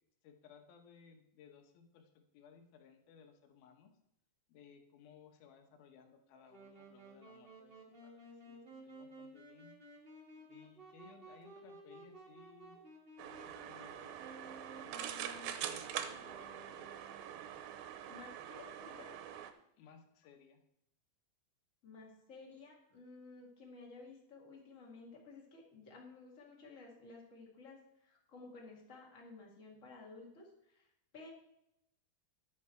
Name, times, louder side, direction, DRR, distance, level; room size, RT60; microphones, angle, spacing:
voice 1, 0.2-3.9 4.5-9.7 10.5-12.7 13.2-14.3 14.8-16.9 19.8-20.6, left 6 dB, 75° left, 5 dB, 3.0 m, -61 dB
Wind instrument woodwind instrument, 6.5-17.4, right 1 dB, 35° right, 0.8 m, -55 dB
sound 1, 13.2-19.5, right 10 dB, 80° right, 2.4 m, -44 dB
voice 2, 18.1-19.1 21.8-31.3, left 3 dB, 30° left, -1 dB, 1.7 m, -54 dB
11.5 x 7.5 x 4.5 m, 0.79 s
omnidirectional pair, 4.5 m